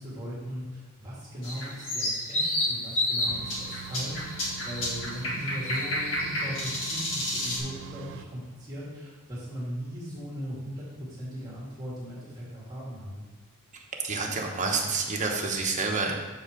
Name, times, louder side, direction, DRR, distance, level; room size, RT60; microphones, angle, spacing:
voice 1, 0.0-13.3, equal, 20° right, -8 dB, 1.9 m, -38 dB
sound 1, 1.4-7.6, left 1 dB, 60° left, 1.9 m, -30 dB
sound 2, 3.2-8.3, right 8 dB, 60° right, 0.3 m, -43 dB
voice 2, 14.0-16.1, right 4 dB, 35° right, 1 dB, 1.0 m, -28 dB
7.3 x 4.8 x 5.0 m, 1.4 s
head